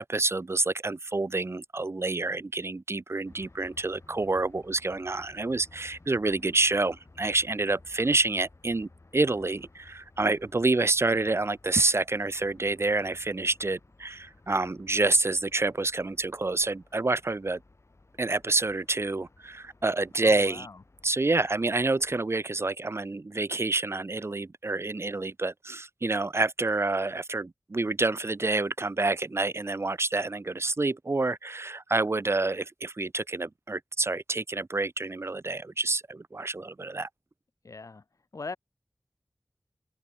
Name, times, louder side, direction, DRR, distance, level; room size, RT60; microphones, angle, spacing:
voice 1, 0.0-17.6 18.2-20.7 21.0-37.1, right 3 dB, 50° right, 0.8 m, -28 dB
sound 1, 3.2-22.2, left 2 dB, 55° left, 5.4 m, -57 dB
voice 2, 20.2-20.8 37.6-38.0 38.3-38.6, left 3 dB, 75° left, 1.2 m, -40 dB
wide cardioid pair, 40°, 6 cm